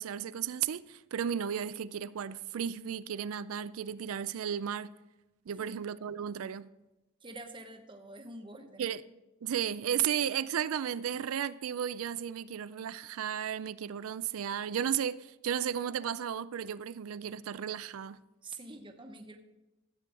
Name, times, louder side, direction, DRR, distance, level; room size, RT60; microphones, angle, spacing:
voice 1, 0.0-4.9 5.5-6.7 8.8-9.0 9.4-18.2, right 9 dB, 90° right, 0.4 m, -34 dB
voice 2, 7.2-8.9 18.4-19.4, right 2 dB, 25° right, 1.0 m, -46 dB
14.0 x 8.3 x 3.8 m
head